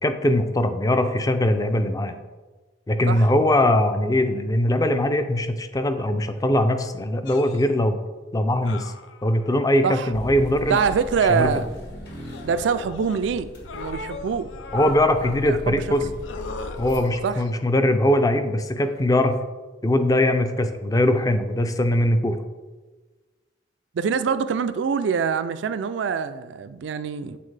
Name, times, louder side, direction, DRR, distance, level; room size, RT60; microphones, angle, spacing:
voice 1, 0.0-2.2 2.9-8.0 8.3-8.9 9.2-10.8 11.3-11.5 14.7-16.1 16.8-19.4 19.8-22.4, left 1 dB, 20° left, 8 dB, 0.4 m, -21 dB
sound 1, 7.3-7.7 8.7-9.6 10.7-11.5 12.3-13.2 13.6-15.4 16.2-17.7 18.9-19.0, left 4 dB, 90° left, 0.4 m, -38 dB
sound 2, 10.1-17.0, equal, 65° left, 1.5 m, -38 dB
voice 2, 10.7-11.7 12.4-14.5 15.2-15.8 17.2-17.4 23.9-27.4, right 6 dB, 70° right, 12 dB, 0.3 m, -24 dB
8.5 x 3.9 x 3.3 m, 1.3 s
head